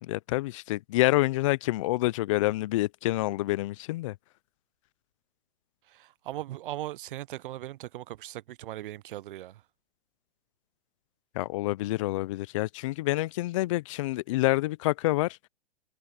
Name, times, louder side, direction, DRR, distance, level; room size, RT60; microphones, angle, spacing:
voice 1, 0.0-4.1 11.4-15.4, left 18 dB, 30° left, 0.4 m, -27 dB
voice 2, 5.9-9.6, right 14 dB, 55° right, 0.4 m, -39 dB
hypercardioid pair, 135°, 32 cm